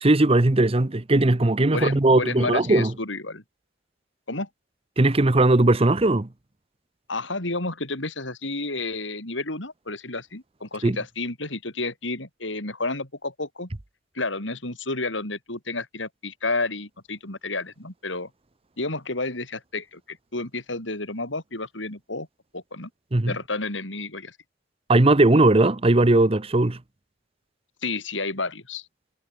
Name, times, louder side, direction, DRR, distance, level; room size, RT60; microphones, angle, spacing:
voice 1, 0.0-2.9 5.0-6.3 10.8-11.0 23.1-23.3 24.9-26.8, right 2 dB, 30° right, 0.9 m, -18 dB
voice 2, 1.7-3.4 4.3-4.5 7.1-13.7 14.1-18.3 18.8-22.3 22.5-22.9 23.3-24.4 27.8-28.9, left 3 dB, 80° left, 6.1 m, -31 dB
head